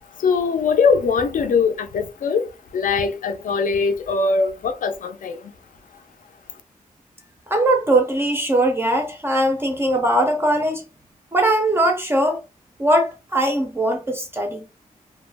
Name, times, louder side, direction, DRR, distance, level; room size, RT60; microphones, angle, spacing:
voice 1, 0.2-5.5, left 5 dB, 65° left, 0.5 m, -21 dB
voice 2, 7.5-10.8 11.3-12.4 12.8-14.6, right 1 dB, 15° right, 0.4 m, -20 dB
2.3 x 2.0 x 3.3 m
wide cardioid pair, 175°, 15 cm